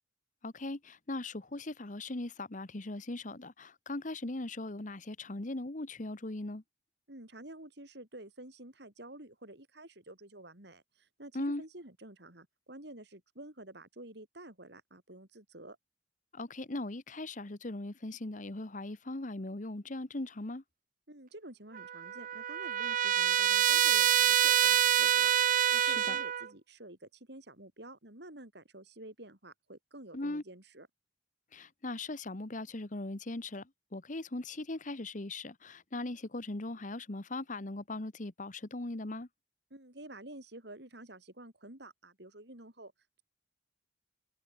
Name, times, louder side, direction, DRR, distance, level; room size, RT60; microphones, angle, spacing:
voice 1, 0.4-6.6 11.3-11.6 16.3-20.6 25.8-26.2 30.1-30.4 31.5-39.3, left 2 dB, 45° left, 1.3 m, -39 dB
voice 2, 7.1-15.8 21.1-30.9 39.7-42.9, right 1 dB, 65° right, 5.0 m, -50 dB
Trumpet, 21.7-26.5, right 11 dB, 45° right, 0.4 m, -26 dB
head